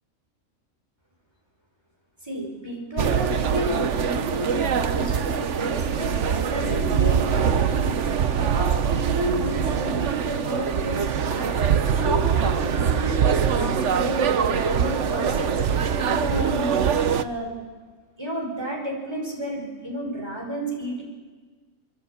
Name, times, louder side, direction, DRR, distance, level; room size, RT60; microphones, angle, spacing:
voice 1, 2.2-7.9 8.4-16.7 17.2-17.5 18.2-21.0, equal, 20° right, 0 dB, 5.5 m, -31 dB
sound 1, 3.0-17.2, right 7 dB, 60° right, 1.2 m, -23 dB
25.0 x 23.0 x 8.6 m, 1.4 s
omnidirectional pair, 1.4 m